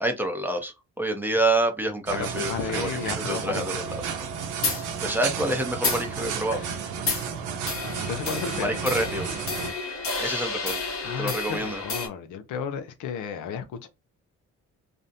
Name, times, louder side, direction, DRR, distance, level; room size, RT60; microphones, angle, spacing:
voice 1, 0.0-2.9 3.3-4.1 4.7-6.6 8.5-9.3 10.2-10.8 11.2-11.8, right 1 dB, 5° right, 0.6 m, -27 dB
sound 1, 2.1-9.7, right 6 dB, 85° right, 0.7 m, -32 dB
voice 2, 2.2-3.8 5.1-5.2 6.5-6.9 7.8-8.8 11.0-13.9, left 7 dB, 80° left, 0.6 m, -34 dB
sound 2, 4.6-4.9 5.8-6.1 7.1-7.3 7.7-12.1, left 4 dB, 45° left, 1.0 m, -30 dB
2.5 x 2.0 x 2.6 m
cardioid pair, 90°, 30 cm